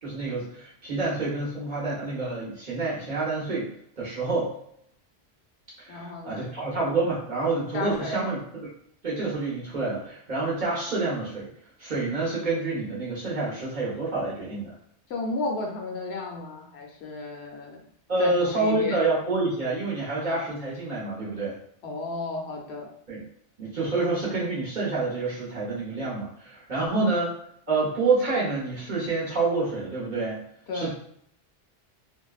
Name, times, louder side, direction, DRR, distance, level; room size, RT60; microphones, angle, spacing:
voice 1, 0.0-3.7 4.0-4.5 5.8-8.4 9.0-11.5 11.8-14.7 18.1-21.5 23.1-23.2 23.6-27.3 27.7-30.4 30.7-30.9, right 3 dB, 45° right, -7 dB, 1.0 m, -28 dB
voice 2, 5.9-6.5 7.7-8.3 15.1-17.8 18.2-19.0 21.8-22.9 26.8-27.1 30.7-30.9, left 3 dB, 70° left, 0 dB, 0.8 m, -33 dB
2.6 x 2.2 x 2.3 m, 0.68 s
omnidirectional pair, 1.2 m